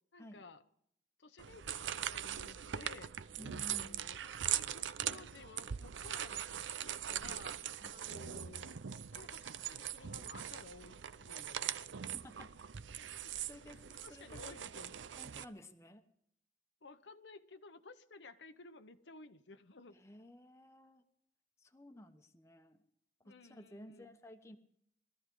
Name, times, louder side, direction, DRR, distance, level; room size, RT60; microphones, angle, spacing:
voice 1, 0.1-0.6 1.2-3.1 3.6-4.2 4.5-7.6 7.9-11.7 13.2-13.4 13.9-14.9 16.8-20.0 23.2-24.1, left 3 dB, 80° left, 8 dB, 1.0 m, -55 dB
sound 1, 1.4-15.4, right 10 dB, 90° right, 0.6 m, -41 dB
voice 2, 3.4-4.0 7.8-8.0 11.7-11.8 12.2-12.5 13.0-13.2 13.5-13.8 14.1-14.6 15.2-16.1 19.9-21.0 21.6-22.8 23.2-24.6, left 1 dB, 15° left, 6 dB, 1.1 m, -54 dB
22.0 x 14.0 x 3.8 m, 0.71 s
head